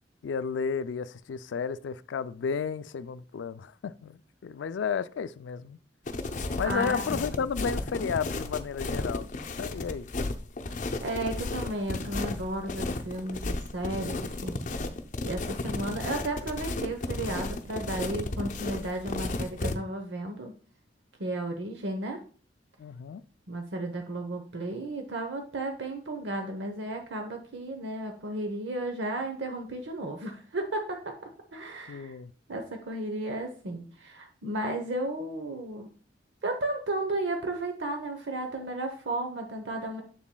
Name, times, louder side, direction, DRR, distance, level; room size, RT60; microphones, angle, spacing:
voice 1, 0.2-5.8 6.6-9.3 9.6-10.1 22.8-23.2 31.9-32.3, left 6 dB, 85° left, 0.4 m, -32 dB
sound 1, 6.1-19.7, left 2 dB, 45° left, 0.6 m, -33 dB
voice 2, 6.6-7.4 11.0-14.6 15.2-20.5 21.2-22.2 23.5-31.1 31.5-32.1 32.5-35.9 36.4-40.0, right 1 dB, 75° right, 0.9 m, -34 dB
7.3 x 7.1 x 2.2 m
head